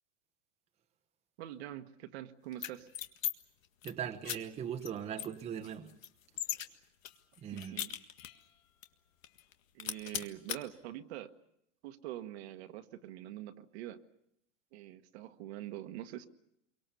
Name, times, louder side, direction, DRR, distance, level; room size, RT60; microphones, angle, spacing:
voice 1, 1.4-2.9 7.4-7.9 9.7-11.3 11.8-14.0 14.7-16.3, right 13 dB, 55° right, 1.5 m, -44 dB
sound 1, 2.5-3.3 3.6-3.9 4.2-4.4 4.8-4.9 5.2-6.7 7.0-8.5 8.8-8.9 9.2-9.5 9.8-10.6, left 11 dB, 90° left, 1.9 m, -38 dB
voice 2, 3.8-5.9 7.4-7.8, right 8 dB, 15° right, 1.0 m, -40 dB
27.5 x 24.0 x 6.9 m
supercardioid pair, 160°, 38 cm